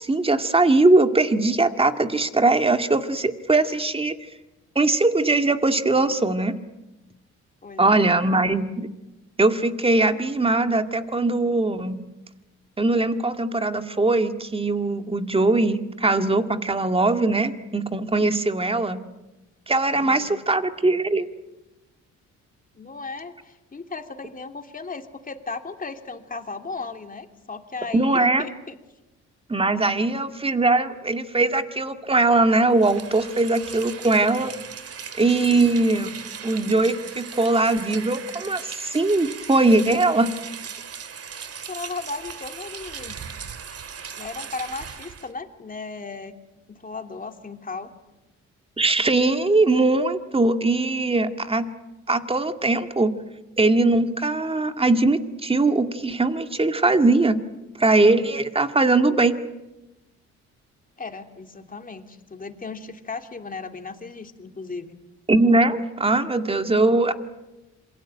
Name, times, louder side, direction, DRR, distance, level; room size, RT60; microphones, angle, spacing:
voice 1, 0.0-4.1 4.8-6.6 7.8-8.9 9.4-12.0 12.8-19.0 19.7-21.3 27.9-28.4 29.5-34.5 35.2-36.1 36.4-40.3 48.8-51.7 52.1-53.1 53.6-57.4 57.8-59.4 65.3-67.1, right 2 dB, 20° right, 8 dB, 2.0 m, -21 dB
voice 2, 7.6-8.1 20.0-20.3 22.7-28.7 41.6-43.2 44.2-46.4 46.7-47.9 61.0-65.0, left 4 dB, 30° left, 6 dB, 2.9 m, -36 dB
Rain, 32.7-45.3, right 7 dB, 50° right, 2.3 m, -38 dB
27.0 x 23.5 x 8.9 m, 1.0 s
cardioid pair, 90°, 30 cm